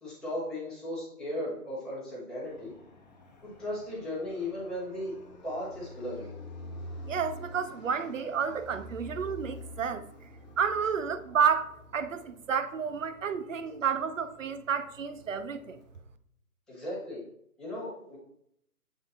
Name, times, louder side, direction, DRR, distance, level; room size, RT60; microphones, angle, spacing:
voice 1, 0.0-2.7 3.4-5.1 5.4-6.3 16.7-17.2 17.6-18.2, left 1 dB, ahead, 1.2 m, -36 dB
Fixed-wing aircraft airplane, 2.4-16.0, left 1 dB, 30° left, 1.0 m, -48 dB
voice 2, 7.1-10.1 10.6-15.8, right 7 dB, 55° right, 0.7 m, -30 dB
7.3 x 3.6 x 3.9 m
figure-of-eight pair, 145°, 45 cm